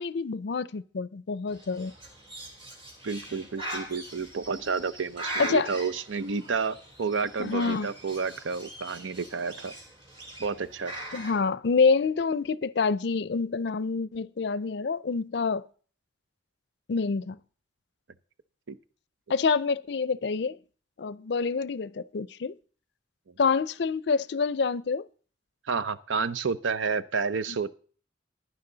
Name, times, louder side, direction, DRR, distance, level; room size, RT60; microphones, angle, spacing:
voice 1, 0.0-1.9 5.4-5.7 7.4-7.9 11.1-15.6 16.9-17.4 19.3-20.6 21.0-22.6 23.4-25.0, left 4 dB, 60° left, 0.4 m, -27 dB
Bird, 1.5-11.4, right 1 dB, 30° right, 3.0 m, -41 dB
voice 2, 3.0-9.7 10.4-10.9 18.7-18.8 25.7-27.7, right 5 dB, 85° right, 0.7 m, -30 dB
15.0 x 11.0 x 3.9 m
head